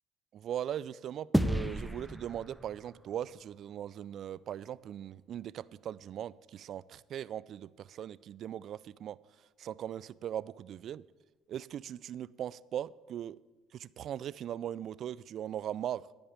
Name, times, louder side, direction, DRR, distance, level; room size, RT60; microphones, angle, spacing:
voice 1, 0.3-9.2 9.6-11.0 11.5-13.4 13.7-16.1, right 10 dB, 55° right, 20 dB, 0.3 m, -39 dB
sound 1, 1.3-4.0, equal, ahead, 0.6 m, -33 dB
15.0 x 5.3 x 7.2 m, 1.2 s
hypercardioid pair, 65°, 0 cm